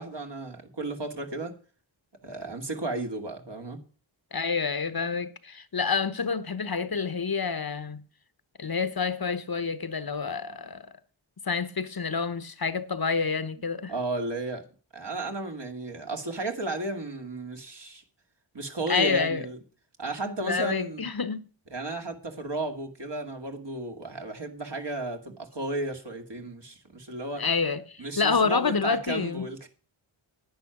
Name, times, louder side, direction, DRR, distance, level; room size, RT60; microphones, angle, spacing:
voice 1, 0.0-1.5 2.2-3.8 13.9-14.7 14.9-18.0 18.5-19.6 20.0-21.0 21.7-27.4 28.0-29.7, right 2 dB, 55° right, 2.4 m, -34 dB
voice 2, 4.3-8.0 8.6-10.8 11.5-13.9 18.9-19.4 20.2-21.5 27.4-29.5, left 5 dB, 45° left, 1.0 m, -28 dB
10.5 x 9.2 x 5.9 m
wide cardioid pair, 50°, 49 cm